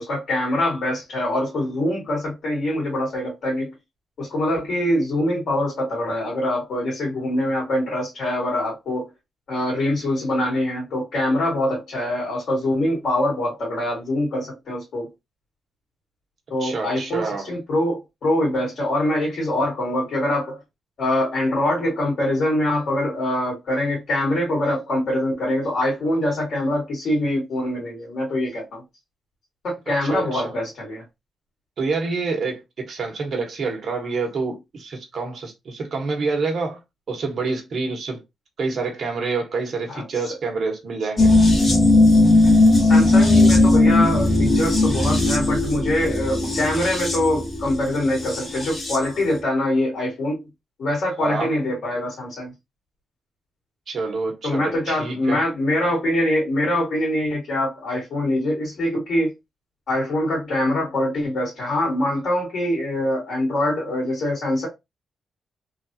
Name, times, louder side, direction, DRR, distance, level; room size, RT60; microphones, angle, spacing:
voice 1, 0.0-3.7 4.2-9.1 9.5-15.1 16.5-20.6 21.0-28.8 29.6-31.0 39.9-40.0 42.8-50.4 50.8-52.5 54.4-59.3 59.9-64.7, left 1 dB, 70° left, 1.8 m, -24 dB
voice 2, 16.6-17.5 30.1-30.5 31.8-36.8 37.1-38.2 38.6-41.3 51.2-51.5 53.9-54.6 54.9-55.4, right 4 dB, 55° right, 1.0 m, -27 dB
sound 1, 41.2-49.1 49.4-49.5, left 2 dB, 35° left, 1.1 m, -17 dB
3.3 x 2.4 x 2.6 m
wide cardioid pair, 130°, 0 cm